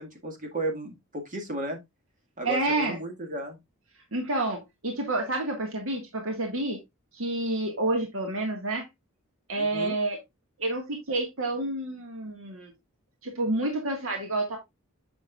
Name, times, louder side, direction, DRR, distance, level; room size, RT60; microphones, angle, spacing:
voice 1, 0.0-1.8 2.4-3.6 9.6-10.0, right 1 dB, 40° right, 1.9 m, -34 dB
voice 2, 2.4-3.0 4.1-6.8 7.1-8.9 9.5-10.2 10.6-12.7 13.2-14.6, right 2 dB, 80° right, 1.7 m, -29 dB
8.3 x 6.2 x 2.4 m
head